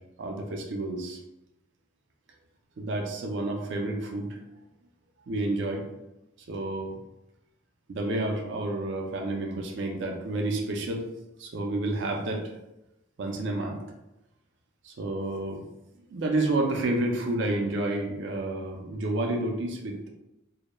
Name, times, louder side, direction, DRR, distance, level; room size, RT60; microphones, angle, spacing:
voice 1, 0.2-1.2 2.8-4.4 5.3-5.8 6.5-7.0 7.9-11.0 11.4-12.4 13.2-13.8 14.8-15.6 16.1-20.0, right 2 dB, 60° right, 2 dB, 0.4 m, -30 dB
2.2 x 2.0 x 3.0 m, 0.93 s
head